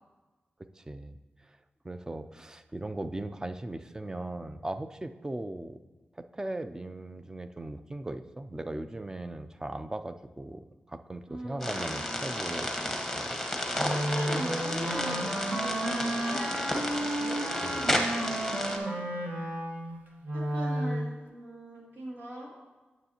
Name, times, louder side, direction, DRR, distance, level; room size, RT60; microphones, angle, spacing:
voice 1, 0.8-1.2 1.8-5.8 6.3-12.7 13.1-13.4 17.6-17.9, right 2 dB, 15° right, 10 dB, 0.4 m, -38 dB
voice 2, 11.3-12.8 13.9-19.1 20.3-22.5, equal, 80° right, -5 dB, 2.5 m, -41 dB
sound 1, 11.6-18.8, left 1 dB, ahead, 1.1 m, -32 dB
Wind instrument woodwind instrument, 13.7-21.1, right 1 dB, 55° right, 1.3 m, -32 dB
9.2 x 7.0 x 2.9 m, 1.2 s
wide cardioid pair, 80°, 4 cm